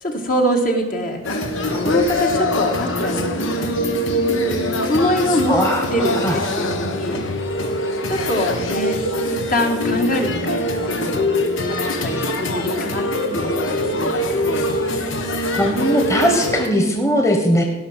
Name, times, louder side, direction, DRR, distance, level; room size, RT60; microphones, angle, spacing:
voice 1, 0.0-1.4 1.8-3.8 4.8-5.6 5.9-7.2 8.1-9.0 9.3-11.3 11.7-11.8 12.0-14.7, equal, 45° left, 2 dB, 1.8 m, -24 dB
sound 1, 1.2-16.7, left 1 dB, 80° left, 1.3 m, -23 dB
voice 2, 5.5-6.4 15.6-17.6, equal, 15° left, 3 dB, 1.4 m, -19 dB
16.0 x 5.8 x 7.4 m, 1.0 s
head